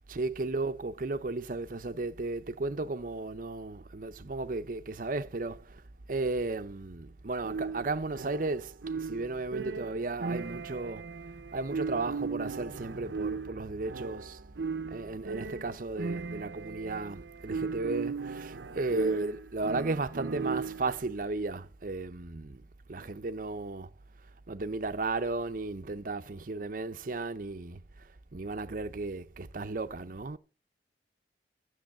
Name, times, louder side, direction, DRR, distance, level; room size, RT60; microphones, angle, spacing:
voice 1, 0.1-5.8 6.1-11.0 11.3-23.9 24.5-27.8 28.3-30.4, right 3 dB, 50° right, 0.7 m, -34 dB
sound 1, 7.4-21.0, right 4 dB, 85° right, 0.7 m, -37 dB
13.0 x 7.3 x 7.3 m
head